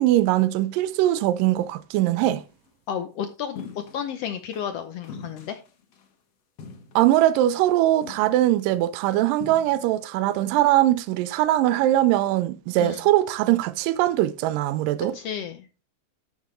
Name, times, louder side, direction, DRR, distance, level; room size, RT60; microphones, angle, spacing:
voice 1, 0.0-2.4 7.0-15.2, right 14 dB, 90° right, 2.3 m, -21 dB
sound 1, 2.2-2.5 3.6-4.1 4.5-4.7 5.0-6.1 6.6-7.3 7.6-7.7 8.0-8.7 9.4-10.0, left 6 dB, 55° left, 2.3 m, -42 dB
voice 2, 2.9-5.6 12.8-13.0 15.1-15.7, left 8 dB, 85° left, 1.3 m, -32 dB
13.0 x 6.3 x 3.2 m
omnidirectional pair, 3.8 m